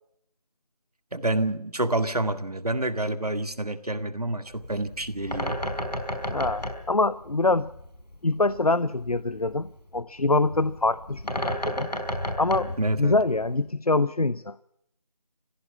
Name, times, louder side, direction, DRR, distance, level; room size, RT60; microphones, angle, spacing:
voice 1, 1.1-5.6 12.8-13.2, right 1 dB, 70° right, 10 dB, 2.0 m, -28 dB
Bird, 4.5-13.6, equal, 85° left, 5.1 m, -34 dB
voice 2, 6.3-7.7 8.2-11.9 12.4-12.7 13.0-14.6, left 2 dB, 65° left, 17 dB, 0.8 m, -25 dB
24.5 x 16.0 x 7.2 m, 0.76 s
figure-of-eight pair, 170°, 20 cm